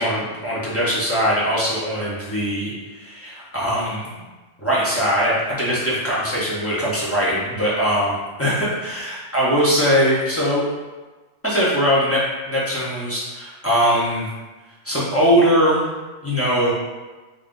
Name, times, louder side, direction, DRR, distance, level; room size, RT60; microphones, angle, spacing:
voice 1, 0.0-4.1 4.6-10.6 11.4-14.3 14.8-15.9 16.2-16.7, equal, 20° left, -8 dB, 0.4 m, -21 dB
2.5 x 2.3 x 3.5 m, 1.2 s
omnidirectional pair, 1.2 m